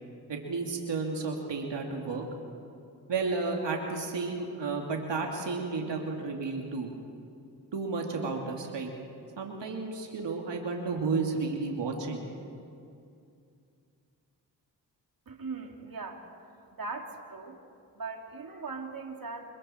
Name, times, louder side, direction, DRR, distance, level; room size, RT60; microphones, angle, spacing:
voice 1, 0.3-2.2 3.1-6.9 7.7-8.9 9.4-12.3, right 4 dB, 75° right, 1 dB, 2.6 m, -32 dB
voice 2, 15.3-16.2 16.7-17.6 17.9-19.5, right 4 dB, 50° right, 2 dB, 2.7 m, -39 dB
29.5 x 21.5 x 4.4 m, 2.5 s
supercardioid pair, 45°, 43 cm